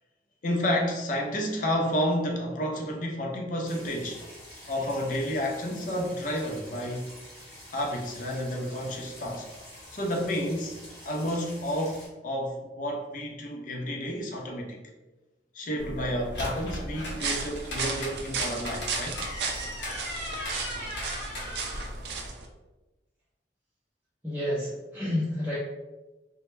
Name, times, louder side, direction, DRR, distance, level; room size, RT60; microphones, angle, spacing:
voice 1, 0.4-4.2 4.7-7.1 7.7-9.5 9.9-10.8 11.1-14.8 15.5-19.2, equal, 45° left, 1 dB, 0.4 m, -30 dB
sound 1, 3.6-12.1, left 1 dB, 15° left, 0.9 m, -48 dB
sound 2, 15.8-22.3, left 1 dB, 90° left, 0.8 m, -37 dB
sound 3, 17.2-22.5, right 5 dB, 65° right, 0.3 m, -34 dB
voice 2, 24.2-25.6, left 1 dB, 10° right, -11 dB, 0.5 m, -30 dB
2.1 x 2.0 x 3.0 m, 1.1 s
head